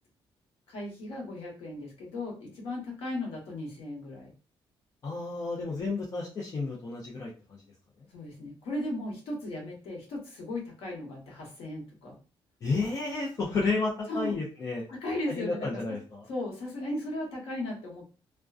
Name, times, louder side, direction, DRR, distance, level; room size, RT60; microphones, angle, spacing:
voice 1, 0.7-4.3 8.1-12.2 14.1-14.4 14.9-16.0 16.3-18.0, left 1 dB, 90° left, -1 dB, 1.1 m, -36 dB
voice 2, 5.0-7.6 12.6-14.8 15.3-16.3, left 3 dB, 35° left, -3 dB, 0.5 m, -31 dB
2.4 x 2.2 x 2.3 m, 0.35 s
cardioid pair, 165°, 9 cm